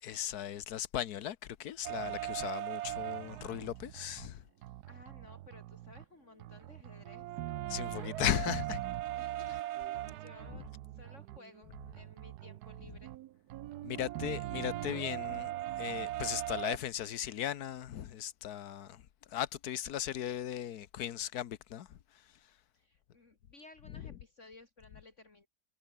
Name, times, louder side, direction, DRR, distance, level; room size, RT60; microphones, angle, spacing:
voice 1, 0.0-4.4 7.7-8.8 10.5-10.6 13.8-15.5 15.8-19.0 19.3-22.2 23.9-24.1, left 11 dB, 70° left, 1.5 m, -37 dB
sound 1, 1.8-4.3 4.6-6.0 6.4-16.8, right 14 dB, 75° right, 1.2 m, -40 dB
voice 2, 4.9-7.3 9.1-10.7 10.9-13.1 14.3-14.7 22.7-25.5, left 3 dB, 45° left, 3.0 m, -57 dB
omnidirectional pair, 1.7 m